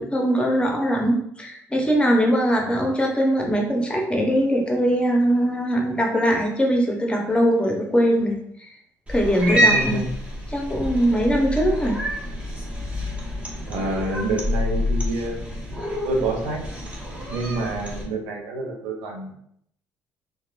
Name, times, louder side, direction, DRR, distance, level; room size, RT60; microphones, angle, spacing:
voice 1, 0.0-8.3 9.1-10.0 10.5-12.0, equal, 15° left, 1 dB, 0.7 m, -21 dB
Cat, 9.1-18.0, equal, 20° right, 0.9 m, -27 dB
voice 2, 9.5-10.1 13.7-15.5 16.0-16.6 17.3-19.3, right 2 dB, 85° right, 0 dB, 0.5 m, -28 dB
2.8 x 2.1 x 2.4 m, 0.70 s
hypercardioid pair, 60°, 7 cm